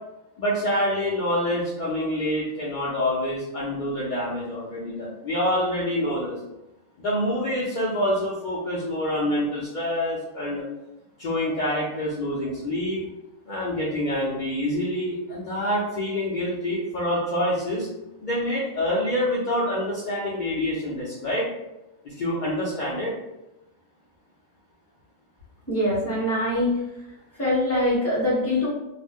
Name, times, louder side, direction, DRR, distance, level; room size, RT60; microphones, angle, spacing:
voice 1, 0.4-6.3 7.0-10.6 11.2-13.0 13.5-17.9 18.2-21.5 22.0-23.1, left 1 dB, 55° left, -7 dB, 0.5 m, -26 dB
voice 2, 25.7-26.8 27.4-28.7, left 1 dB, 10° left, -7 dB, 0.9 m, -23 dB
2.4 x 2.1 x 3.4 m, 0.93 s
omnidirectional pair, 1.5 m